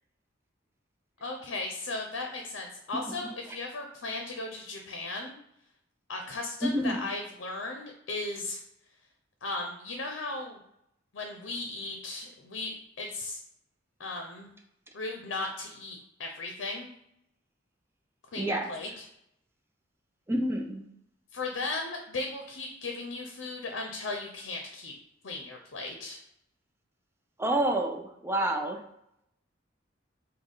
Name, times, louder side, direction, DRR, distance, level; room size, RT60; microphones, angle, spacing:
voice 1, 1.2-5.3 6.1-8.6 9.4-10.6 11.1-13.4 14.0-14.5 14.9-16.9 18.3-19.1 21.3-24.9 25.2-26.2, left 2 dB, 85° left, 2 dB, 0.7 m, -36 dB
voice 2, 6.6-7.0 18.4-18.7 20.3-20.8 27.4-28.8, right 1 dB, 15° right, 2 dB, 0.5 m, -28 dB
5.1 x 2.3 x 3.8 m, 0.77 s
head